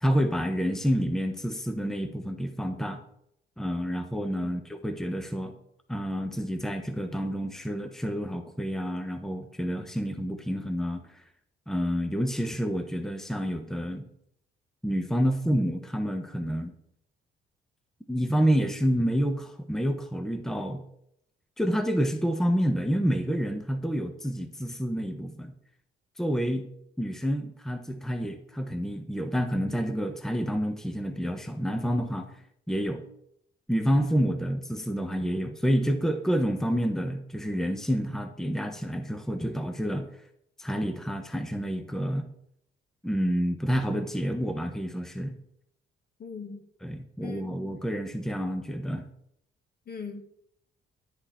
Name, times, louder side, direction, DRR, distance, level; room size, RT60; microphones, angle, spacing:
voice 1, 0.0-3.0 3.6-5.5 5.9-11.2 11.7-14.0 14.8-16.7 18.1-20.8 21.6-25.5 26.2-26.7 27.0-32.3 32.7-33.0 33.7-40.1 40.6-42.3 43.0-45.3 46.8-49.0, equal, ahead, 7 dB, 1.1 m, -28 dB
voice 2, 46.2-46.6 47.2-47.6 49.9-50.2, left 5 dB, 50° left, 5 dB, 2.2 m, -40 dB
12.0 x 7.7 x 4.4 m, 0.73 s
cardioid pair, 90°, 20 cm